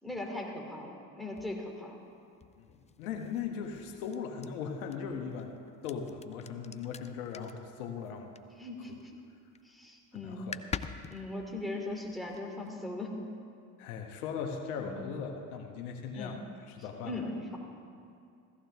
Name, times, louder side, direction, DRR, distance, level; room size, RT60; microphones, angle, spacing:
voice 1, 0.0-2.0 8.6-9.1 9.6-10.5 11.1-13.2 14.8-14.9 16.1-16.3 17.0-17.6, left 2 dB, ahead, -1 dB, 2.9 m, -39 dB
sound 1, 1.3-9.0 9.3-9.8 10.0-10.1 10.3-12.7, left 6 dB, 15° left, 0.4 m, -45 dB
voice 2, 2.6-5.5 5.8-8.3 8.9-9.0 10.1-10.6 13.8-16.4 16.7-17.2, left 6 dB, 85° left, 4 dB, 1.2 m, -39 dB
16.0 x 14.5 x 3.5 m, 2.4 s
hypercardioid pair, 70°, 43 cm